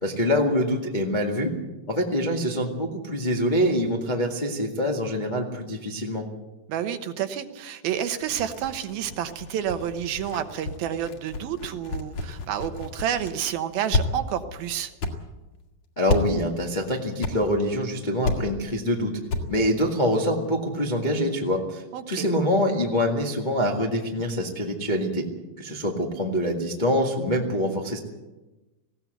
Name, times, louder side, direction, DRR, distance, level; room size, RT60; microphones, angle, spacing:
voice 1, 0.0-1.5 1.9-6.2 16.0-19.2 19.5-25.3 25.6-28.0, equal, 70° left, 0 dB, 0.4 m, -25 dB
voice 2, 6.7-14.9 21.9-22.3, right 9 dB, 70° right, 9 dB, 2.7 m, -29 dB
sound 1, 7.9-13.5 13.9-14.0 14.4-14.5 15.0-15.1 16.1-16.2 17.2-17.3 17.6-17.8 18.2-18.4 18.8-18.9 19.3-19.4 19.7-19.8, left 3 dB, 50° left, 2.9 m, -30 dB
19.5 x 16.5 x 8.1 m, 1.1 s
omnidirectional pair, 4.7 m